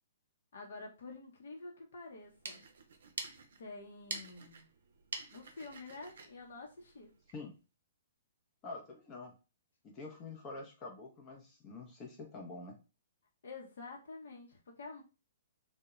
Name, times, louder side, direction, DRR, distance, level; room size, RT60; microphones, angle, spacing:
voice 1, 0.5-2.6 3.6-4.7 5.3-7.1 13.4-15.0, left 3 dB, 65° left, 0 dB, 0.7 m, -48 dB
sound 1, 2.1-7.5, right 4 dB, 65° right, 0.5 m, -47 dB
voice 2, 8.6-9.3 9.8-12.8, left 3 dB, 30° left, 1 dB, 0.6 m, -46 dB
2.2 x 2.1 x 2.9 m, 0.31 s
hypercardioid pair, 125°, 0 cm